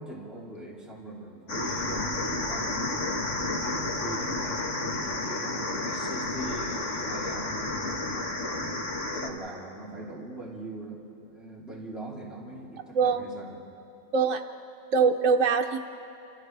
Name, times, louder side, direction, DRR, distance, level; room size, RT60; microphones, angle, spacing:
voice 1, 0.0-2.8 3.2-8.7 9.1-13.6, right 1 dB, ahead, -6 dB, 3.2 m, -41 dB
sound 1, 1.5-9.3, left 2 dB, 70° left, 2.0 m, -31 dB
voice 2, 12.9-13.3 14.1-14.4 14.9-15.8, right 5 dB, 85° right, 3 dB, 1.1 m, -23 dB
29.0 x 28.5 x 3.3 m, 2.7 s
omnidirectional pair, 1.3 m